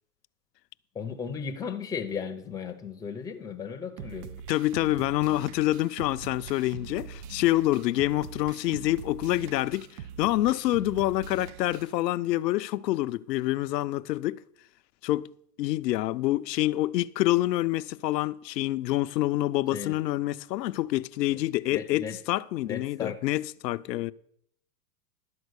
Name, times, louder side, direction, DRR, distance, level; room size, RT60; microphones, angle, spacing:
voice 1, 0.9-4.4 19.7-20.0 21.3-21.4 21.7-22.2 22.6-23.2, left 6 dB, 5° left, 0.6 m, -35 dB
sound 1, 4.0-12.0, right 8 dB, 70° right, 0.7 m, -43 dB
voice 2, 4.5-9.9 10.2-14.4 15.0-15.3 15.6-24.1, left 16 dB, 80° left, 0.6 m, -27 dB
12.0 x 4.5 x 8.0 m
hypercardioid pair, 135°, 49 cm